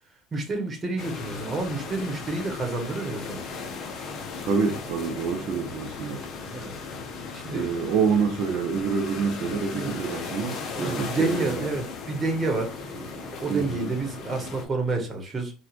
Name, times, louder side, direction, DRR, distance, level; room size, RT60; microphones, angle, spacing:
voice 1, 0.3-3.4 6.4-6.7 7.3-7.7 9.7-9.9 10.7-15.5, right 3 dB, 20° right, 1.1 m, -30 dB
sound 1, 1.0-14.6, left 4 dB, 50° left, 0.8 m, -37 dB
voice 2, 4.4-6.2 7.5-11.8 13.5-13.9, right 5 dB, 55° right, 0.7 m, -27 dB
4.4 x 2.4 x 2.5 m
cardioid pair, 130°, 0 cm